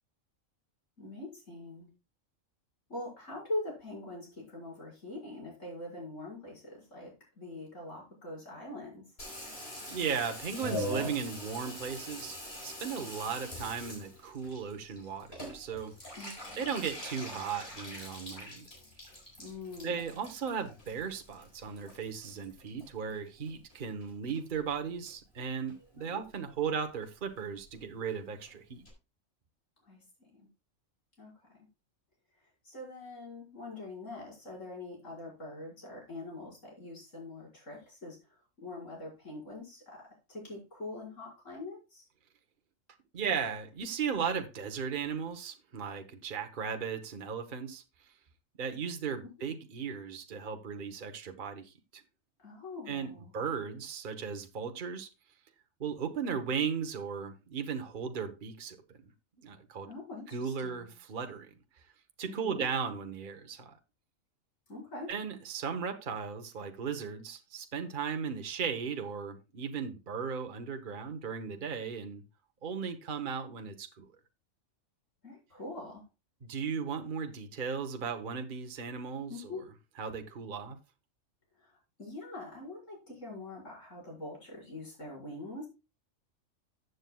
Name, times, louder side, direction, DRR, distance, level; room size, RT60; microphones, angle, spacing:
voice 1, 1.0-1.9 2.9-9.1 16.1-16.6 19.4-20.1 26.0-26.2 29.8-30.0 30.3-30.5 31.2-31.7 32.6-42.1 52.4-53.4 59.9-60.9 62.3-62.6 64.7-65.1 75.2-76.0 79.3-79.6 81.6-81.7 82.0-85.7, left 2 dB, 70° left, 5.6 m, -43 dB
Water tap faucet / Bathtub (filling or washing), 9.2-23.7 24.0-24.7 25.1-25.2 25.4-25.5 25.7-26.1 26.3-26.4 26.7-26.8 27.0-27.1 27.4-27.5 27.7-27.8 28.1-28.2 28.5-28.6 28.9-29.0, left 1 dB, 50° left, 4.6 m, -43 dB
voice 2, 9.9-12.4 12.6-15.9 16.6-18.6 19.8-28.8 43.1-47.8 48.6-52.0 52.9-55.1 55.8-58.8 59.4-59.9 60.3-61.5 62.2-63.8 65.1-72.2 72.6-74.1 76.4-79.5 80.0-80.8, right 6 dB, 40° right, 1.1 m, -36 dB
14.5 x 8.0 x 2.3 m
omnidirectional pair, 1.4 m